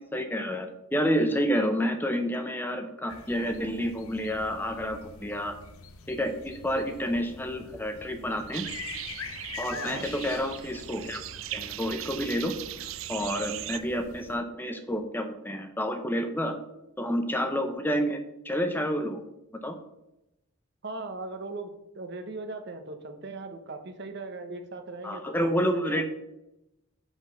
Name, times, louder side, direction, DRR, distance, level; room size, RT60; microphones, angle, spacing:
voice 1, 0.0-5.6 6.1-8.6 9.6-11.2 11.5-12.5 13.1-16.5 17.0-18.2 18.4-19.2 19.6-19.8 25.0-26.0, equal, 10° left, 6 dB, 0.6 m, -29 dB
sound 1, 3.1-14.4, left 5 dB, 85° left, 0.7 m, -45 dB
sound 2, 8.5-13.8, right 13 dB, 70° right, 0.4 m, -39 dB
voice 2, 9.7-10.1 20.8-26.0, right 3 dB, 55° right, 7 dB, 0.9 m, -39 dB
5.6 x 5.4 x 6.3 m, 0.89 s
head